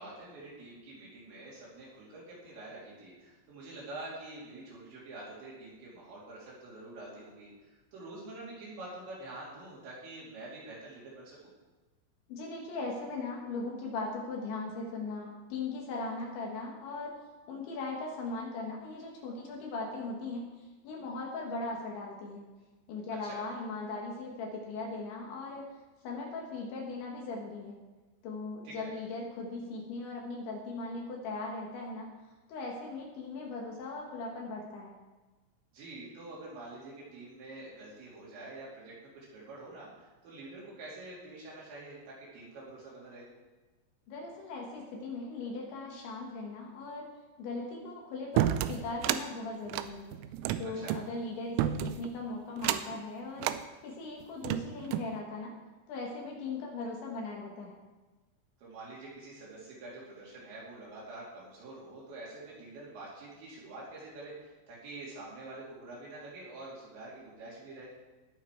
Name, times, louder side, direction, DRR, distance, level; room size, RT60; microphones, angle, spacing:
voice 1, 0.0-11.4 23.2-23.4 28.6-28.9 35.7-43.3 50.7-51.0 58.6-67.9, right 2 dB, 60° right, -7 dB, 4.9 m, -46 dB
voice 2, 12.3-17.2 17.5-20.5 20.8-22.4 22.9-25.7 26.0-27.8 28.2-32.1 32.5-34.9 44.1-47.1 47.4-50.1 50.6-53.5 53.8-55.5 55.9-57.8, left 3 dB, 70° left, -1 dB, 3.7 m, -39 dB
sound 1, 48.4-49.2 49.7-51.0 51.6-52.1 52.6-53.0 53.4-53.6 54.2-55.1, right 12 dB, 85° right, 3.3 m, -30 dB
20.0 x 7.1 x 4.7 m, 1.2 s
omnidirectional pair, 6.0 m